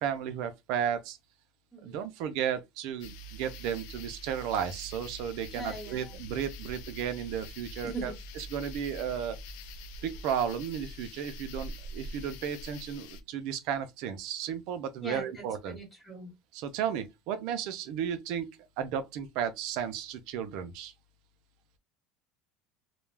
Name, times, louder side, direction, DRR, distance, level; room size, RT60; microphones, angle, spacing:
voice 1, 0.0-1.2 1.8-8.1 8.5-9.4 10.0-15.8 16.5-18.5 18.8-20.9, right 8 dB, 60° right, 0.4 m, -34 dB
sound 1, 3.0-13.2, equal, 70° left, 0.4 m, -44 dB
voice 2, 5.5-6.2 7.8-8.1 15.0-16.3, right 2 dB, 5° left, 1.1 m, -41 dB
2.3 x 2.1 x 3.2 m
cardioid pair, 160°, 0 cm